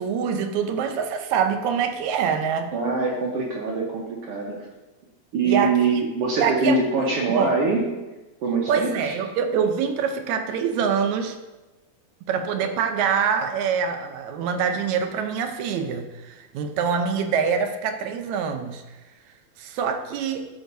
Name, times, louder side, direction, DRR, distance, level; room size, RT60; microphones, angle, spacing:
voice 1, 0.0-2.7 5.4-5.8 6.4-6.8 7.3-7.5 8.7-11.4 12.3-18.8 19.6-20.5, right 6 dB, 80° right, 6 dB, 2.0 m, -25 dB
voice 2, 2.7-4.7 5.3-7.8 8.4-9.1, right 4 dB, 65° right, -2 dB, 1.7 m, -24 dB
13.5 x 6.9 x 2.7 m, 1.1 s
omnidirectional pair, 3.3 m